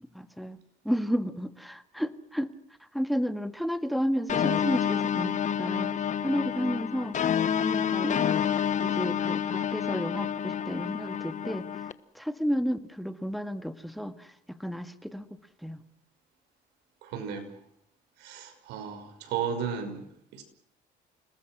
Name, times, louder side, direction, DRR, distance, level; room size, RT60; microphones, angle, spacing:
voice 1, 0.2-0.6 0.9-2.5 2.9-5.9 6.2-7.2 7.6-8.2 8.8-11.7 12.2-15.2 15.6-15.8, equal, ahead, 9 dB, 1.9 m, -32 dB
sound 1, 4.3-11.9, left 8 dB, 45° left, 1.3 m, -28 dB
voice 2, 17.0-17.5 18.2-20.0 20.3-20.4, right 7 dB, 90° right, 7 dB, 5.7 m, -34 dB
29.0 x 20.0 x 6.3 m, 0.71 s
cardioid pair, 110°, 17 cm